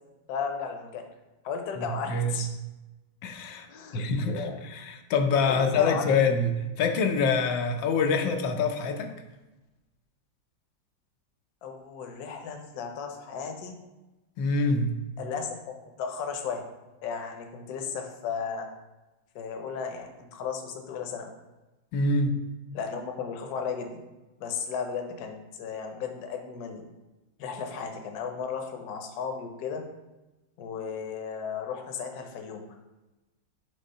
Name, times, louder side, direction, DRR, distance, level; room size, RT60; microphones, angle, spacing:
voice 1, 0.3-1.1 1.4-2.5 3.7-4.6 5.3-6.2 11.6-13.8 15.2-16.7 17.0-18.7 19.3-21.3 22.7-24.0 24.4-26.8 27.4-29.8 30.6-32.6, left 6 dB, 65° left, 4 dB, 1.2 m, -35 dB
voice 2, 1.8-2.5 3.2-3.7 3.9-9.1 14.4-15.0 21.9-22.4, left 4 dB, 85° left, 5 dB, 1.4 m, -26 dB
5.5 x 3.5 x 5.3 m, 1.1 s
omnidirectional pair, 2.0 m